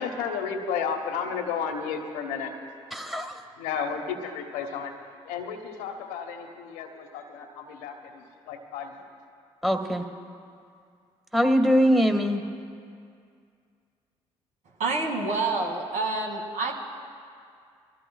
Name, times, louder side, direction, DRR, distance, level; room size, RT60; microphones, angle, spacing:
voice 1, 0.0-2.6 3.1-4.9 5.2-9.1, left 6 dB, 85° left, 3 dB, 1.2 m, -33 dB
voice 2, 2.9-3.4 9.6-10.0 11.3-12.4, equal, ahead, 4 dB, 1.7 m, -22 dB
voice 3, 14.8-16.7, right 3 dB, 65° right, 0 dB, 2.4 m, -27 dB
24.5 x 15.0 x 2.4 m, 2.3 s
hypercardioid pair, 50°, 13 cm